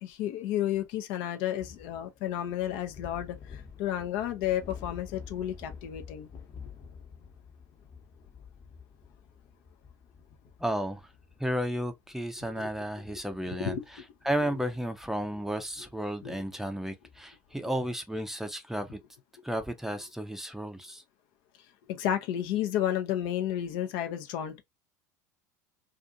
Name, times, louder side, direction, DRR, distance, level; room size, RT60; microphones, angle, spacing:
voice 1, 0.0-6.3 12.6-12.7 13.5-13.8 16.2-16.4 21.9-24.6, left 11 dB, 60° left, 0.6 m, -32 dB
sound 1, 1.5-17.4, left 6 dB, 40° left, 1.0 m, -50 dB
voice 2, 10.6-11.0 11.4-13.8 14.2-19.0 19.4-21.0, equal, 5° right, 0.5 m, -33 dB
2.5 x 2.4 x 2.5 m
hypercardioid pair, 75°, 9 cm